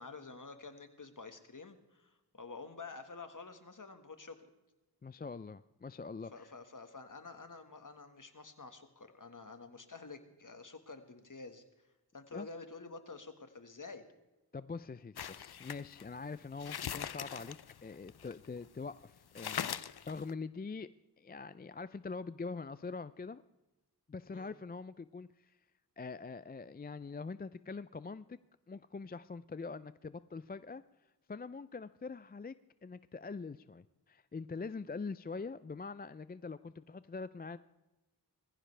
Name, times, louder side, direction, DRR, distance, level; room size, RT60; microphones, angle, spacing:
voice 1, 0.0-4.5 6.3-11.6 12.1-14.1 24.3-24.5, left 4 dB, 50° left, 8 dB, 1.6 m, -49 dB
voice 2, 5.0-6.5 12.3-12.5 14.5-17.6 17.8-20.9 21.2-23.4 24.1-25.6 26.0-28.4 28.7-30.8 31.3-32.5 32.8-37.6, left 4 dB, 25° left, 15 dB, 0.4 m, -44 dB
sound 1, 15.2-18.7 19.0-19.1 19.3-20.3, left 9 dB, 70° left, 0.6 m, -41 dB
20.5 x 15.0 x 3.3 m, 1.0 s
wide cardioid pair, 55°, 39 cm